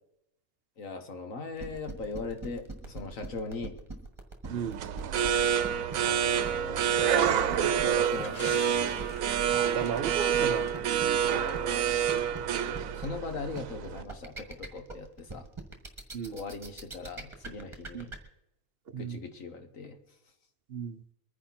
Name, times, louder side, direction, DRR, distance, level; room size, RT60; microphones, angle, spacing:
voice 1, 0.8-3.8 6.2-9.0 11.3-12.2 12.9-15.5 16.3-18.1 19.0-20.0, left 3 dB, 65° left, 6 dB, 1.9 m, -40 dB
sound 1, 1.6-18.2, right 3 dB, 20° right, 1.8 m, -41 dB
sound 2, 4.4-14.0, right 9 dB, 70° right, 1.1 m, -28 dB
sound 3, 7.2-11.2 11.5-11.6 12.2-12.3, left 4 dB, 35° left, 0.8 m, -48 dB
voice 2, 9.6-11.4 16.1-16.4 17.9-18.1 18.9-19.2 20.7-21.0, right 8 dB, 55° right, 13 dB, 0.8 m, -35 dB
23.0 x 10.0 x 4.2 m, 0.82 s
omnidirectional pair, 1.5 m